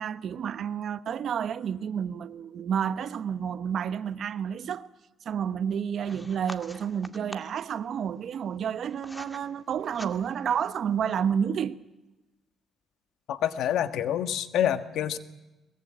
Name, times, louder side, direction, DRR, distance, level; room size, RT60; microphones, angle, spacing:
voice 1, 0.0-4.9 5.2-11.8, right 8 dB, 65° right, 1.0 m, -30 dB
sound 1, 6.0-7.6 8.4-9.4 9.8-10.5, left 1 dB, 10° left, 1.9 m, -44 dB
voice 2, 13.3-15.2, left 10 dB, 80° left, 1.5 m, -27 dB
22.0 x 21.5 x 8.7 m
cardioid pair, 90°, 0 cm